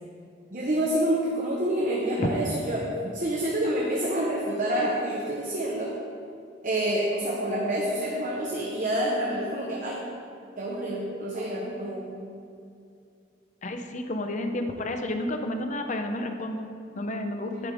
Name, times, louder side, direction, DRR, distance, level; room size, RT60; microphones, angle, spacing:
voice 1, 0.5-2.8 3.1-5.9 6.6-10.0 10.6-12.1 17.5-17.7, right 1 dB, 45° right, -4 dB, 1.1 m, -28 dB
voice 2, 13.6-17.7, left 1 dB, 40° left, 5 dB, 0.7 m, -31 dB
10.5 x 9.8 x 3.6 m, 2.4 s
head